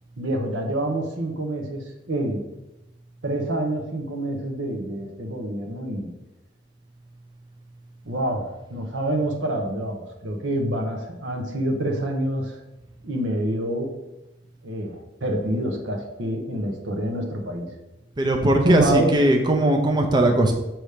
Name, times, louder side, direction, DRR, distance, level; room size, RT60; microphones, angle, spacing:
voice 1, 0.2-2.5 3.2-6.1 8.0-12.6 13.0-13.9 14.6-17.7 18.6-19.2, right 1 dB, 90° right, 3 dB, 1.0 m, -26 dB
voice 2, 18.2-20.5, right 1 dB, 25° right, 3 dB, 0.5 m, -19 dB
6.7 x 3.0 x 4.9 m, 0.96 s
head